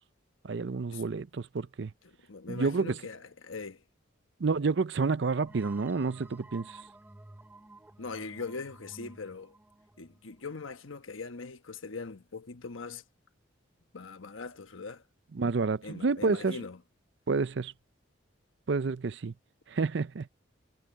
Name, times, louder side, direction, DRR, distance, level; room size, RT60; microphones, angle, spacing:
voice 1, 0.4-1.9 2.5-3.0 4.4-6.8 15.3-16.6 17.3-17.7 18.7-19.3 19.7-20.3, right 4 dB, 60° right, 0.5 m, -29 dB
voice 2, 2.0-3.8 8.0-9.5 10.0-13.0 13.9-15.0 15.8-16.8, left 4 dB, 90° left, 1.2 m, -41 dB
sound 1, 5.5-10.9, right 2 dB, 10° right, 0.6 m, -52 dB
head